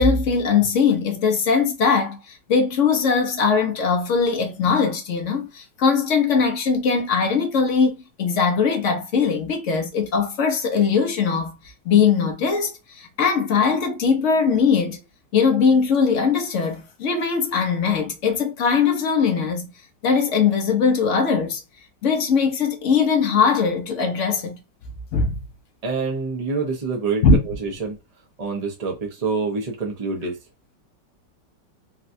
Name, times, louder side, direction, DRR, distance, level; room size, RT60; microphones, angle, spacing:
voice 1, 0.0-11.6 11.8-15.0 15.3-19.7 20.0-21.6 22.0-24.6 25.1-25.4 27.2-27.4, left 5 dB, 55° left, 0.9 m, -20 dB
voice 2, 25.8-28.0 28.4-30.4, right 4 dB, 35° right, 0.6 m, -26 dB
4.1 x 2.3 x 2.6 m
omnidirectional pair, 2.0 m